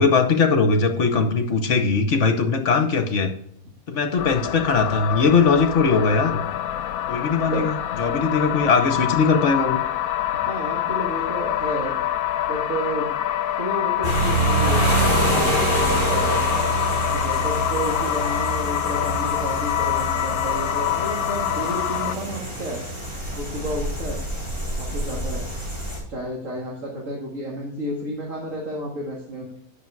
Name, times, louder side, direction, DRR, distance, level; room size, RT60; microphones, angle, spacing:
voice 1, 0.0-3.3 3.9-6.4 7.1-9.8, left 4 dB, 60° left, 7 dB, 1.2 m, -20 dB
sound 1, 4.2-22.2, left 11 dB, 85° left, 1.1 m, -26 dB
voice 2, 10.3-12.0 12.5-13.1 13.6-16.5 17.1-22.8 23.4-24.2 24.8-25.4 26.1-29.6, equal, 60° right, -3 dB, 2.3 m, -31 dB
sound 2, 14.0-26.0, right 1 dB, 20° right, 4.6 m, -26 dB
10.0 x 6.4 x 4.6 m, 0.70 s
omnidirectional pair, 1.5 m